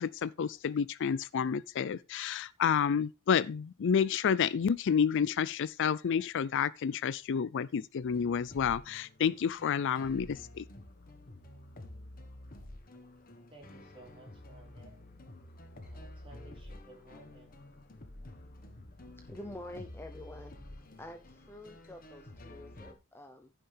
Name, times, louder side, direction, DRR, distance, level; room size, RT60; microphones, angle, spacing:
voice 1, 0.0-10.6, left 7 dB, 60° left, 0.4 m, -30 dB
sound 1, 8.0-22.9, left 1 dB, 40° left, 1.3 m, -50 dB
voice 2, 13.5-15.0 15.8-17.5, right 1 dB, 25° right, 3.4 m, -56 dB
voice 3, 19.3-20.5 21.0-23.5, left 1 dB, 10° left, 0.7 m, -47 dB
14.5 x 5.7 x 3.4 m
head